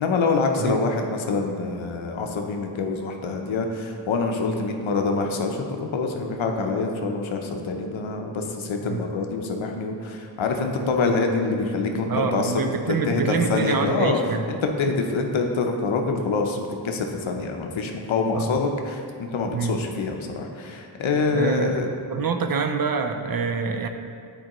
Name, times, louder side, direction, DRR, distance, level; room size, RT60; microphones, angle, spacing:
voice 1, 0.0-12.5 13.1-14.2 14.5-21.9, left 4 dB, 80° left, 3 dB, 0.7 m, -25 dB
voice 2, 12.1-14.5 18.3-18.5 19.5-19.8 21.3-21.8 22.1-23.9, right 5 dB, 50° right, 6 dB, 0.5 m, -26 dB
9.1 x 4.6 x 3.0 m, 2.4 s
wide cardioid pair, 115°, 47 cm